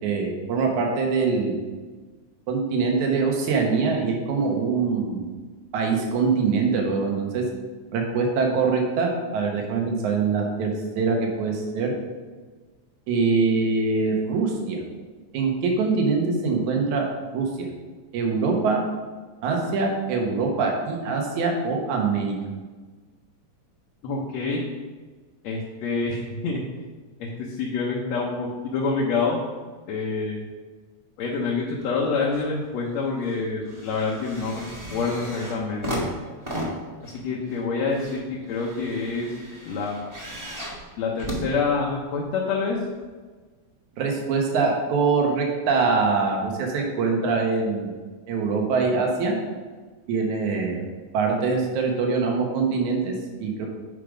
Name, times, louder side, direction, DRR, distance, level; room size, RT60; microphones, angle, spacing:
voice 1, 0.0-1.6 2.5-5.3 5.7-7.5 7.9-11.9 13.1-14.8 15.3-17.7 18.1-18.8 19.4-22.4 44.0-47.9 48.3-49.4 50.1-50.8 51.1-53.7, right 4 dB, 80° right, 1 dB, 2.6 m, -23 dB
voice 2, 24.0-24.6 25.4-26.6 27.2-29.4 29.9-30.4 31.2-34.6 34.9-36.1 37.0-39.3 39.6-39.9 41.0-42.8, left 4 dB, 70° left, -3 dB, 2.0 m, -27 dB
sound 1, 31.8-32.5 32.8-42.2 43.0-43.1, right 1 dB, 20° right, 0.7 m, -36 dB
8.4 x 5.1 x 5.1 m, 1.4 s
omnidirectional pair, 3.3 m